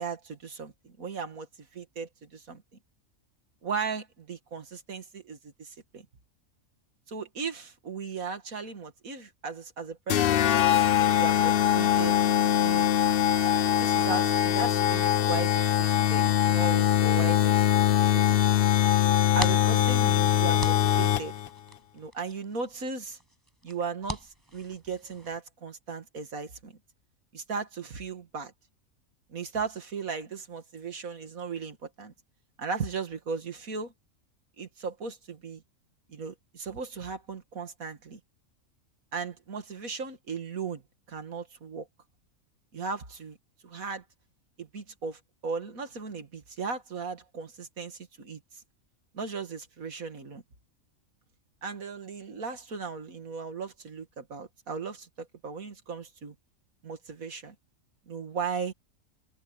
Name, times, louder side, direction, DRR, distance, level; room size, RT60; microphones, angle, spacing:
voice 1, 0.0-1.5 1.7-2.6 3.6-6.1 7.1-10.5 10.9-12.9 13.5-18.4 19.3-21.3 21.9-23.2 23.6-26.8 27.3-28.5 29.3-32.1 32.6-33.9 34.6-35.6 36.1-38.2 39.1-40.8 41.1-41.9 42.7-43.4 43.6-44.0 44.6-48.6 49.1-50.4 51.6-56.3 56.8-57.5 58.1-58.7, right 5 dB, 90° right, 2.5 m, -37 dB
sound 1, 10.1-21.5, left 11 dB, 60° left, 0.6 m, -23 dB
sound 2, 19.1-25.4, equal, 15° right, 7.0 m, -42 dB
omnidirectional pair, 1.4 m